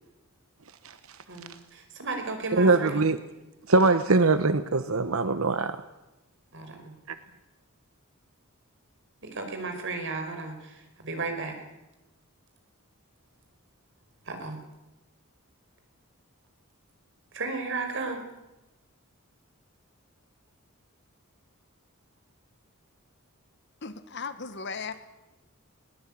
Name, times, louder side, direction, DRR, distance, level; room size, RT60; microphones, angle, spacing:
voice 1, 1.3-3.1 6.5-6.9 9.2-11.6 14.3-14.6 17.3-18.2, right 3 dB, 60° right, 5 dB, 4.9 m, -34 dB
voice 2, 2.5-3.2 3.7-5.8 7.1-7.2, right 3 dB, 75° right, 11 dB, 1.0 m, -22 dB
voice 3, 23.8-24.9, left 5 dB, 55° left, 11 dB, 1.6 m, -36 dB
21.0 x 18.5 x 8.7 m, 0.99 s
head